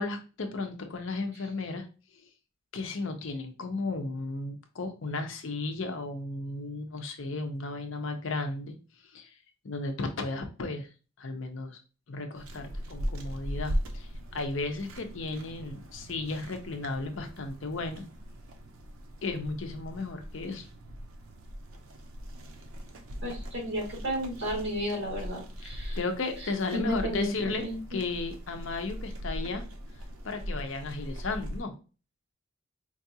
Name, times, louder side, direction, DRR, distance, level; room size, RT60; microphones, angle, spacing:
voice 1, 0.0-1.9 2.7-8.8 9.1-9.3 9.6-10.9 11.2-11.8 12.1-18.0 19.2-20.7 25.6-29.6 30.2-31.7, left 3 dB, 70° left, 6 dB, 0.6 m, -34 dB
sound 1, 12.3-31.6, equal, 85° right, 0.6 m, -40 dB
voice 2, 23.2-26.0 26.7-27.8, equal, 60° right, -2 dB, 1.9 m, -33 dB
4.6 x 2.4 x 2.7 m, 0.33 s
head